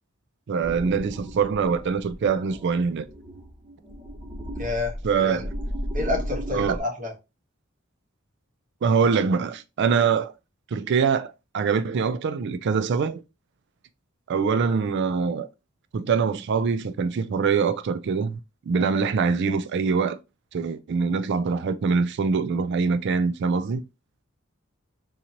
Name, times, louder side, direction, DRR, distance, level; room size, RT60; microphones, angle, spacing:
voice 1, 0.5-3.0 5.0-5.5 6.5-6.8 8.8-10.3 10.7-13.2 14.3-15.5 15.9-18.4 18.7-20.2 20.5-23.8, right 5 dB, 55° right, 0.4 m, -24 dB
sound 1, 0.6-6.8, equal, 25° right, 0.7 m, -35 dB
voice 2, 4.6-4.9 5.2-5.4 5.9-7.1, left 2 dB, 40° right, 1.3 m, -29 dB
3.8 x 2.9 x 2.8 m
head